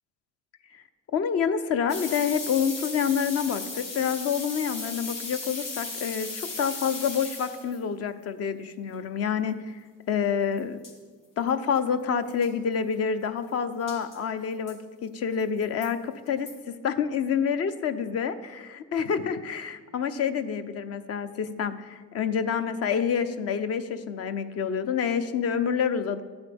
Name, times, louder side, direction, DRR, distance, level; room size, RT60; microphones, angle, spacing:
voice 1, 1.1-9.7 10.1-10.8 11.4-26.2, left 7 dB, 50° left, 11 dB, 0.8 m, -28 dB
sound 1, 1.9-7.8 10.6-10.7 10.8-10.9 11.5-11.6 11.8-11.9 12.3-12.5 13.9-14.2 14.7-14.8 15.4-15.9 16.5-16.6, left 3 dB, 75° left, 3.4 m, -36 dB
13.5 x 8.1 x 3.5 m, 1.4 s
supercardioid pair, 100°, 31 cm